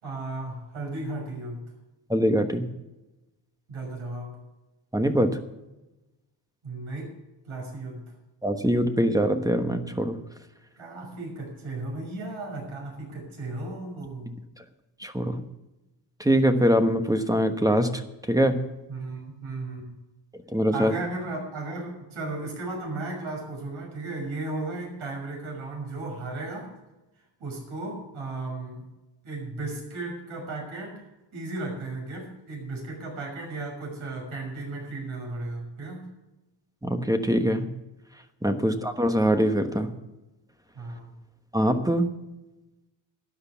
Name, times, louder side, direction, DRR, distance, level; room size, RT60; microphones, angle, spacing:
voice 1, 0.0-1.6 3.7-4.4 6.6-7.1 7.4-8.0 10.8-14.4 18.9-19.9 20.7-26.7 27.4-28.8 29.2-31.0 31.3-36.1 38.6-38.8 40.8-41.1, right 2 dB, 70° right, 1 dB, 6.2 m, -35 dB
voice 2, 2.1-2.7 4.9-5.4 8.4-10.2 15.0-15.4 16.2-18.0 18.3-18.7 20.5-20.9 36.8-37.7 38.4-39.9 41.5-42.1, equal, 5° right, 7 dB, 1.1 m, -23 dB
12.5 x 9.8 x 7.1 m, 1.0 s
cardioid pair, 115°, 50 cm